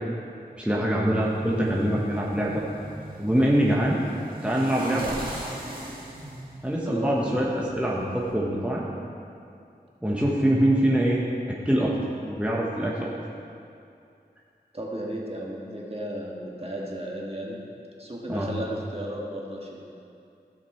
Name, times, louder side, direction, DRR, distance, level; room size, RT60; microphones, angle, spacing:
voice 1, 0.6-2.6 3.2-4.0 4.4-5.2 6.6-8.8 10.0-11.2 11.5-12.0 12.2-13.1 18.3-18.5, right 1 dB, 5° right, -4 dB, 1.2 m, -24 dB
sound 1, 1.1-8.3, right 1 dB, 55° right, 2.1 m, -40 dB
voice 2, 6.9-7.5 14.7-17.6 18.0-19.8, right 1 dB, 35° right, -3 dB, 1.8 m, -34 dB
15.5 x 5.2 x 4.4 m, 2.5 s
wide cardioid pair, 40°, 17 cm